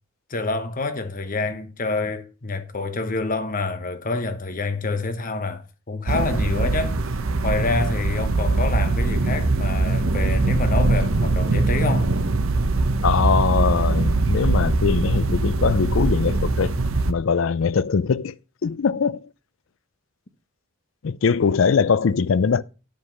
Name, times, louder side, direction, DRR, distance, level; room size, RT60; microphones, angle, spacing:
voice 1, 0.3-7.0 7.4-12.1, left 3 dB, 40° left, 1.0 m, -27 dB
sound 1, 6.1-17.1, right 2 dB, 85° right, 0.8 m, -22 dB
voice 2, 13.0-16.8 17.1-18.4 18.6-19.3 21.0-22.6, left 5 dB, 65° left, 0.4 m, -21 dB
9.8 x 5.2 x 5.8 m
head